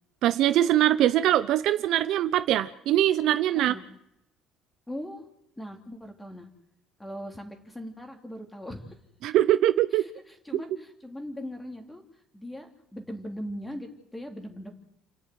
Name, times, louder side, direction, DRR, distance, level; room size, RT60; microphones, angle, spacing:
voice 1, 0.2-3.7 9.2-10.0, right 12 dB, 60° right, 12 dB, 0.9 m, -22 dB
voice 2, 4.9-5.3 5.6-6.5 7.0-8.8 9.9-12.0 12.3-14.7, equal, 5° left, 4 dB, 3.2 m, -39 dB
29.5 x 10.0 x 9.4 m, 0.80 s
cardioid pair, 150°, 0 cm